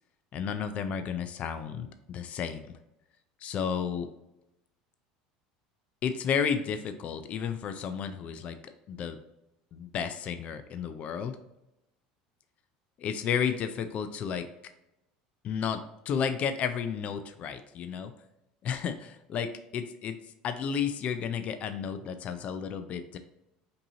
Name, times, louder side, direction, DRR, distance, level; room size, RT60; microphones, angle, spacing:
voice 1, 0.3-2.6 3.4-4.1 6.0-9.2 9.7-11.4 13.0-14.5 15.4-18.1 18.6-20.2 20.4-23.2, left 7 dB, 45° left, 9 dB, 0.4 m, -32 dB
5.2 x 2.8 x 2.8 m, 0.88 s
supercardioid pair, 95°, 3 cm